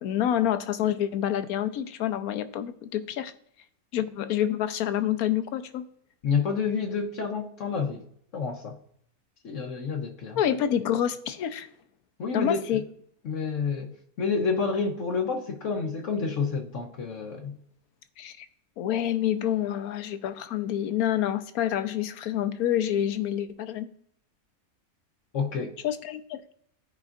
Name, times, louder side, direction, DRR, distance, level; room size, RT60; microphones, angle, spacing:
voice 1, 0.0-3.3 3.9-5.8 10.4-11.7 12.3-12.8 18.2-18.5 18.8-23.9 25.8-26.4, left 10 dB, 80° left, 1.1 m, -27 dB
voice 2, 6.2-8.0 8.3-8.8 9.4-10.4 12.2-12.7 13.2-17.6 25.3-25.7, left 5 dB, 60° left, 1.1 m, -29 dB
14.0 x 5.0 x 2.5 m
omnidirectional pair, 1.5 m